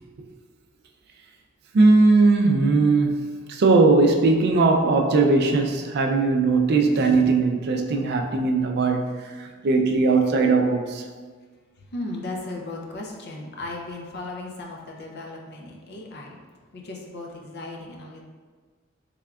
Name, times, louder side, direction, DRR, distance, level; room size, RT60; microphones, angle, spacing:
voice 1, 1.7-11.0, right 3 dB, 50° right, 0.4 m, -19 dB
voice 2, 11.9-16.4 16.7-18.2, left 2 dB, 50° left, 0.5 m, -36 dB
3.5 x 3.3 x 2.3 m
head